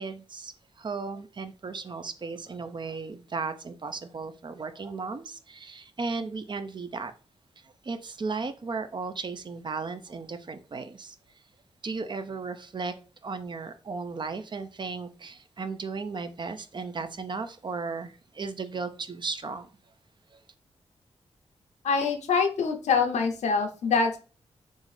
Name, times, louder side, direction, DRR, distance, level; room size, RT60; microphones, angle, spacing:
voice 1, 0.0-7.1 7.6-11.2 11.8-19.7 20.3-20.4, right 4 dB, 40° right, 0.5 m, -35 dB
voice 2, 21.8-24.2, left 5 dB, 85° left, 0.7 m, -25 dB
3.6 x 2.6 x 3.2 m
cardioid pair, 55°, 12 cm